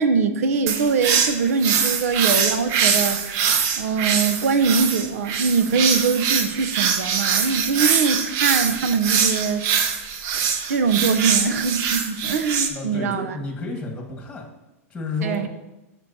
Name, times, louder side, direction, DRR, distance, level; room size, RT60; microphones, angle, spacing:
voice 1, 0.0-3.4 3.8-9.6 10.7-13.4 15.2-15.5, right 5 dB, 80° right, 10 dB, 0.8 m, -22 dB
sound 1, 0.7-12.7, right 7 dB, 45° right, 0.9 m, -23 dB
voice 2, 12.7-14.4 14.9-15.5, left 3 dB, 10° left, 0 dB, 1.6 m, -31 dB
13.5 x 6.2 x 2.8 m, 0.98 s
hypercardioid pair, 130°, 8 cm